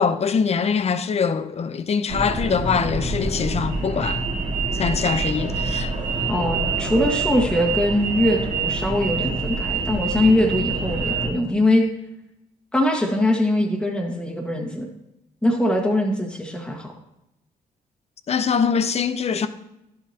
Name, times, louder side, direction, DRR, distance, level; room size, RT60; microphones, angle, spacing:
voice 1, 0.0-4.3 4.7-5.9 18.3-19.5, left 6 dB, 45° left, 0.6 m, -23 dB
sound 1, 2.1-11.3, right 4 dB, 50° right, 2.1 m, -26 dB
voice 2, 6.3-11.8 12.7-14.9 15.4-16.9, left 1 dB, 5° left, 1.6 m, -22 dB
11.0 x 7.6 x 2.8 m
cardioid pair, 80°, 15 cm